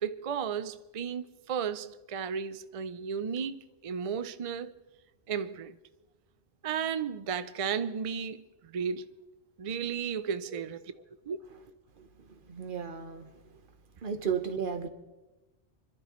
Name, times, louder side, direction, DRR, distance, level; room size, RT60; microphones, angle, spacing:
voice 1, 0.0-4.7 5.3-5.8 6.6-9.1 9.6-10.8 11.3-11.4, right 7 dB, 65° right, 0.3 m, -34 dB
voice 2, 12.5-13.3 14.0-14.9, right 7 dB, 45° right, 1.2 m, -34 dB
25.5 x 12.0 x 3.1 m
omnidirectional pair, 1.2 m